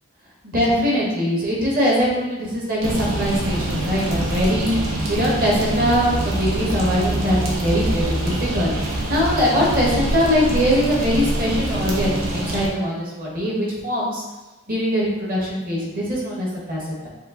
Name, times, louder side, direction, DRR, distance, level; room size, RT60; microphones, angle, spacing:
voice 1, 0.4-14.2 14.7-17.1, equal, 45° right, -4 dB, 1.4 m, -22 dB
sound 1, 2.8-12.7, right 1 dB, 90° right, 1.0 m, -25 dB
5.4 x 2.5 x 3.8 m, 1.1 s
head